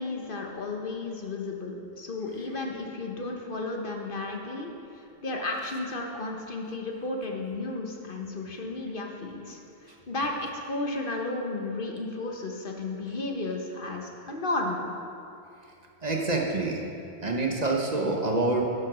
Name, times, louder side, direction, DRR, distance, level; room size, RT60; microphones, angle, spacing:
voice 1, 0.0-14.9, left 2 dB, 55° left, 1 dB, 1.3 m, -33 dB
voice 2, 16.0-16.8 17.2-18.6, right 2 dB, 40° right, 0 dB, 1.2 m, -26 dB
11.0 x 7.5 x 6.2 m, 2.6 s
omnidirectional pair, 1.1 m